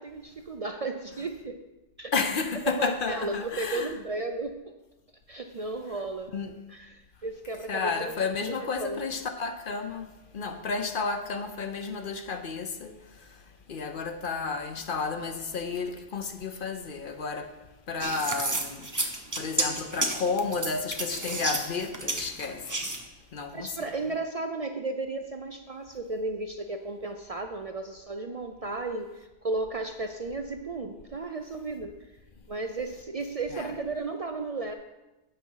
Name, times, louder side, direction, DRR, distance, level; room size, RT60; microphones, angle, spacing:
voice 1, 0.0-1.6 2.0-2.1 2.8-4.8 5.3-6.3 6.7-8.1 8.5-9.0 23.5-31.9 32.5-34.7, right 3 dB, 55° right, 0.4 m, -34 dB
voice 2, 2.1-4.0 6.3-6.5 7.7-10.1 10.3-13.4 13.7-17.5 17.9-22.9 23.3-23.9 33.5-33.7, left 4 dB, 55° left, 0.8 m, -32 dB
sound 1, 18.0-23.0, right 2 dB, 20° right, 0.8 m, -31 dB
8.5 x 5.9 x 5.6 m
omnidirectional pair, 1.2 m